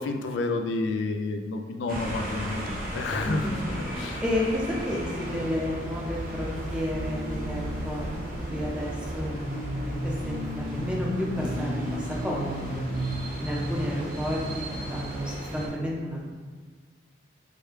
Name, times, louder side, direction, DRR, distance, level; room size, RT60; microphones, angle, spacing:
voice 1, 0.0-4.2, left 3 dB, 75° left, 5 dB, 0.3 m, -30 dB
sound 1, 1.9-15.7, equal, 50° right, 0.9 m, -33 dB
voice 2, 3.2-3.6 4.2-9.3 9.7-12.8 13.4-16.3, left 1 dB, 5° right, -4 dB, 0.5 m, -31 dB
sound 2, 5.0-12.3, left 1 dB, 65° right, 0.3 m, -41 dB
4.6 x 2.2 x 3.2 m, 1.5 s
head